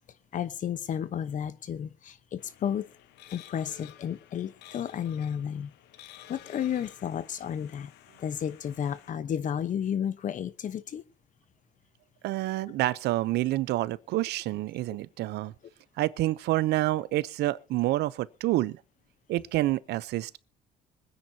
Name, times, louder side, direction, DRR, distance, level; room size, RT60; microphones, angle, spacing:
voice 1, 0.3-2.9 3.3-5.7 6.3-7.9 8.2-11.0, left 9 dB, 50° left, 1.0 m, -32 dB
sound 1, 2.4-9.1, left 12 dB, 80° left, 1.1 m, -53 dB
voice 2, 12.2-15.5 16.0-18.8 19.3-20.4, right 16 dB, 80° right, 0.7 m, -28 dB
25.5 x 9.7 x 2.8 m
cardioid pair, 110°, 17 cm